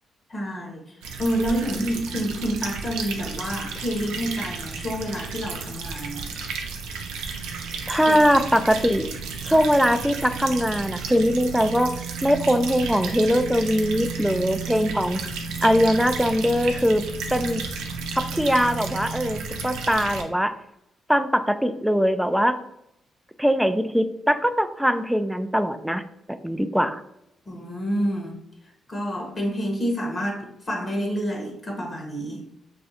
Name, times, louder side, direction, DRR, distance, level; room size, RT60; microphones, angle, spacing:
voice 1, 0.3-6.3 8.1-8.2 9.4-9.6 27.5-32.4, equal, 35° left, 0 dB, 0.8 m, -28 dB
sound 1, 1.0-20.2, right 5 dB, 85° right, 0.4 m, -33 dB
voice 2, 7.9-9.1 9.5-11.9 12.2-15.2 15.6-17.0 17.3-17.6 18.2-20.5 21.1-22.6 23.4-26.0 26.4-27.0, equal, 5° right, 10 dB, 0.3 m, -21 dB
2.5 x 2.4 x 4.1 m, 0.81 s
supercardioid pair, 55°, 0 cm